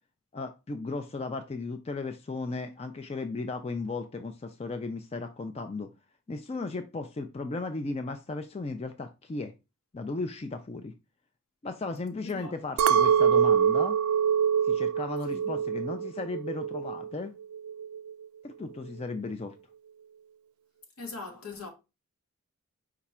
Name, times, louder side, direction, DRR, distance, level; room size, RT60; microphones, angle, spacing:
voice 1, 0.3-5.9 6.3-9.5 9.9-10.9 11.6-14.0 14.6-17.3 18.4-19.5, left 3 dB, 30° left, 0.3 m, -35 dB
voice 2, 12.2-12.6 15.3-15.5 21.0-21.7, left 3 dB, 85° left, 1.2 m, -41 dB
Chink clink, 12.8-17.2 17.5-18.1, right 8 dB, 80° right, 0.3 m, -25 dB
4.9 x 2.3 x 4.1 m
head